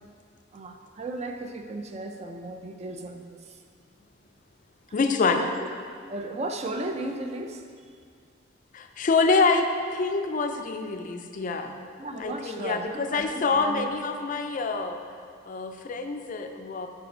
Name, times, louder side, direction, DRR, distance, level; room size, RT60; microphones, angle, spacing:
voice 1, 0.5-3.6 5.4-5.8 6.1-7.6 12.0-13.9, right 2 dB, 35° right, 5 dB, 0.4 m, -35 dB
voice 2, 4.9-5.4 8.7-11.7 12.2-15.0 15.5-16.9, left 4 dB, 45° left, 6 dB, 0.4 m, -26 dB
5.4 x 5.1 x 5.3 m, 2.2 s
head